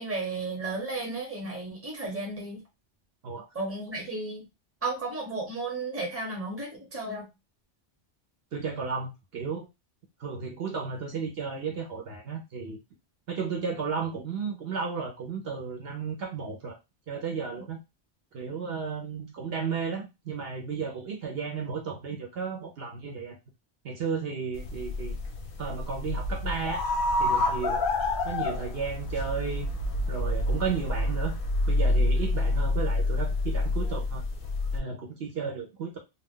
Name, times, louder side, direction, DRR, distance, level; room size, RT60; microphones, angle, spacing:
voice 1, 0.0-2.6 3.5-4.4 4.8-7.2, right 3 dB, 15° right, 0 dB, 0.9 m, -33 dB
voice 2, 8.5-9.7 10.2-12.8 13.3-16.8 17.1-17.8 18.3-23.4 23.8-25.1 25.6-26.8 27.2-27.8 28.2-29.7 30.1-31.3 31.7-34.2 34.7-36.0, right 5 dB, 65° right, 1 dB, 0.9 m, -33 dB
sound 1, 24.5-34.8, left 2 dB, 60° left, 0.7 m, -28 dB
2.3 x 2.3 x 3.6 m, 0.25 s
omnidirectional pair, 1.2 m